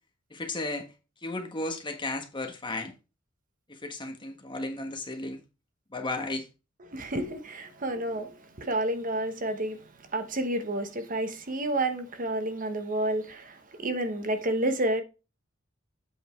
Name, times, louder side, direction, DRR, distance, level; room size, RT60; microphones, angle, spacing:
voice 1, 0.3-0.9 1.2-2.9 3.7-5.4 5.9-6.5, left 2 dB, 25° left, 1.4 m, -34 dB
voice 2, 6.9-15.0, right 1 dB, 40° right, 1.1 m, -30 dB
8.1 x 5.3 x 4.5 m
head